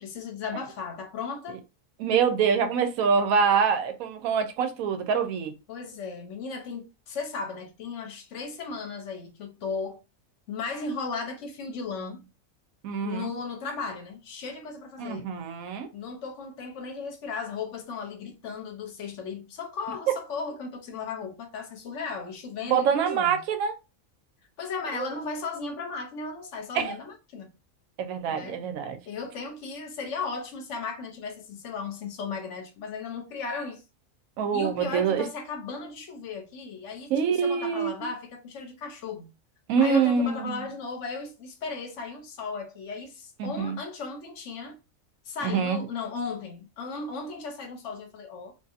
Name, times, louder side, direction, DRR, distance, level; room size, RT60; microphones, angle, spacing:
voice 1, 0.0-1.6 5.7-10.0 10.5-12.3 13.0-15.3 15.9-23.4 24.6-27.5 28.3-28.6 29.1-33.8 34.5-39.3 39.8-44.8 45.3-48.5, left 4 dB, 65° left, 0.9 m, -36 dB
voice 2, 2.0-5.5 12.8-13.3 15.0-15.9 22.6-23.7 24.9-25.1 26.7-27.0 28.0-29.0 34.4-35.2 37.1-37.9 39.7-40.7 43.4-43.8 45.4-45.8, right 6 dB, 90° right, 1.0 m, -25 dB
2.7 x 2.5 x 2.4 m
omnidirectional pair, 1.4 m